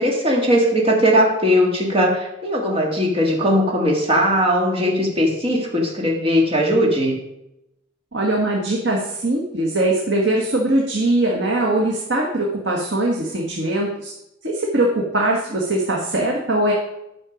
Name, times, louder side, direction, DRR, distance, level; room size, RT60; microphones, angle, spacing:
voice 1, 0.0-7.2, equal, 30° right, -1 dB, 1.9 m, -19 dB
voice 2, 8.1-14.1 14.4-16.7, right 1 dB, 65° right, -2 dB, 1.5 m, -21 dB
9.9 x 6.3 x 5.1 m, 0.86 s
head